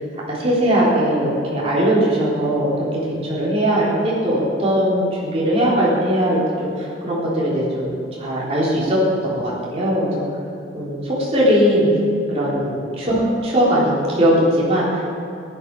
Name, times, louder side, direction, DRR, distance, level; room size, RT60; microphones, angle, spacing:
voice 1, 0.3-2.8 3.2-10.2 10.7-11.9 12.3-15.1, equal, 30° right, -7 dB, 3.6 m, -19 dB
14.5 x 11.5 x 4.8 m, 2.7 s
head